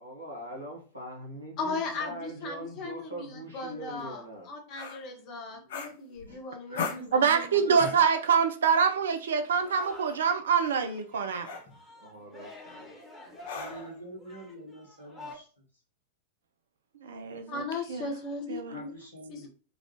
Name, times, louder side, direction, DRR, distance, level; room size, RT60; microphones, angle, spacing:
voice 1, 0.0-4.5 11.9-12.9 13.2-13.5, right 1 dB, 85° right, 1.1 m, -42 dB
voice 2, 1.6-4.2 4.5-7.2 17.5-18.9 19.3-19.5, left 3 dB, 40° left, 0.9 m, -37 dB
sound 1, 4.7-5.0 5.7-6.4 6.7-7.1 7.7-8.1 9.5-9.7 10.6-10.9 11.4-11.7 13.4-13.9, left 6 dB, 60° left, 0.5 m, -37 dB
voice 3, 5.5-5.9 6.2-8.0 12.1-12.3 13.5-15.6 18.7-19.5, right 1 dB, 85° left, 1.2 m, -45 dB
voice 4, 7.1-11.5 17.0-17.6 17.9-18.1 18.5-18.8, right 6 dB, 65° right, 0.5 m, -25 dB
Singing, 9.5-10.3 10.6-15.4, left 1 dB, 15° left, 1.2 m, -48 dB
3.9 x 2.4 x 2.9 m
figure-of-eight pair, 90°, 0 cm